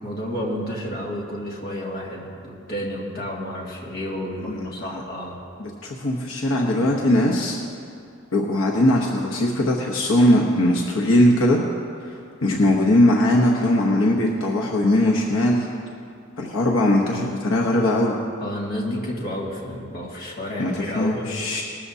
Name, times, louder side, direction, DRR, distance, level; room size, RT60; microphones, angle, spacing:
voice 1, 0.0-5.4 18.4-21.3, equal, 50° left, -4 dB, 2.2 m, -31 dB
voice 2, 4.4-5.0 5.6-7.6 8.3-11.6 12.4-15.7 16.4-18.2 20.6-21.6, left 1 dB, 80° left, -2 dB, 1.1 m, -20 dB
19.0 x 13.0 x 2.8 m, 2.4 s
head